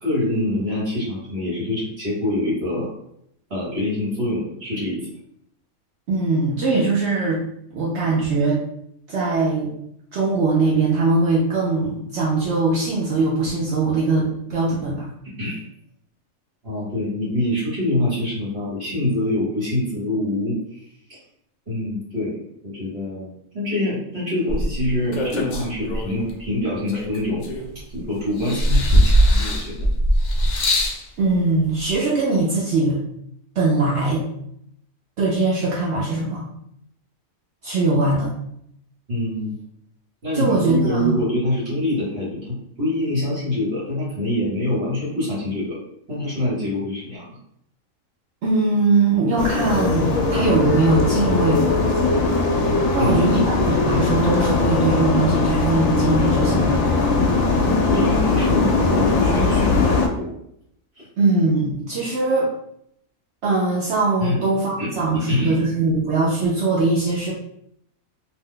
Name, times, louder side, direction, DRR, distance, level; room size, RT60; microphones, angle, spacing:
voice 1, 0.0-2.9 3.5-5.1 15.4-15.6 16.6-21.2 21.7-22.4 22.6-27.5 27.9-29.9 39.1-39.5 40.2-45.8 46.1-47.4 53.0-53.4 57.9-60.3 61.0-61.1 64.2-64.4 64.8-65.6, left 1 dB, 50° right, -7 dB, 1.3 m, -25 dB
voice 2, 6.1-7.4 7.7-8.6 9.1-9.7 10.1-15.1 31.2-33.0 33.6-34.2 35.2-36.5 37.6-38.3 40.3-41.2 48.4-51.8 52.9-56.8 61.2-62.5 63.4-67.3, right 3 dB, 65° right, -4 dB, 0.8 m, -21 dB
sound 1, 24.5-26.3 26.9-28.0 28.4-31.0 31.9-32.0, equal, 65° left, 0.4 m, -20 dB
sound 2, 49.4-60.1, left 3 dB, 80° left, 1.0 m, -20 dB
2.6 x 2.2 x 3.6 m, 0.74 s
omnidirectional pair, 1.4 m